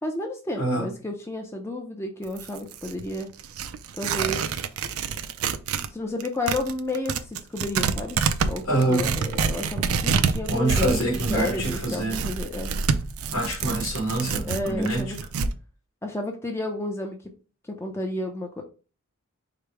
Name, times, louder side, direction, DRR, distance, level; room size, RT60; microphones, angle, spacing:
voice 1, 0.0-3.3 3.9-4.6 5.9-8.2 8.5-8.6 8.9-12.7 14.4-15.2 16.0-17.2 17.6-18.6, left 1 dB, 10° left, 0.5 m, -31 dB
voice 2, 0.5-0.9 8.6-9.2 10.5-12.2 13.3-15.2, right 1 dB, 70° left, 2.0 m, -26 dB
Tearing, 2.2-5.9 6.2-15.5, right 5 dB, 75° right, 0.4 m, -27 dB
4.9 x 2.1 x 4.6 m
head